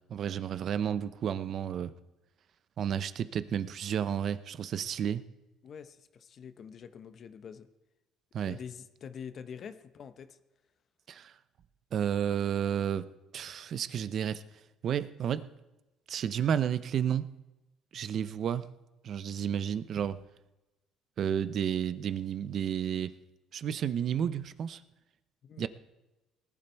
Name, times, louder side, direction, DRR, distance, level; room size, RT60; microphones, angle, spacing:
voice 1, 0.1-1.9 2.8-5.2 8.3-8.6 11.1-11.3 11.9-13.1 13.3-14.4 14.8-15.5 16.1-17.3 17.9-18.7 19.0-20.2 21.2-23.1 23.5-24.8 25.6-25.7, right 9 dB, 50° right, 14 dB, 0.7 m, -31 dB
voice 2, 5.6-7.7 8.5-10.4 25.4-25.7, left 7 dB, 45° left, 10 dB, 0.9 m, -45 dB
19.5 x 11.0 x 4.6 m, 1.0 s
cardioid pair, 115°, 0 cm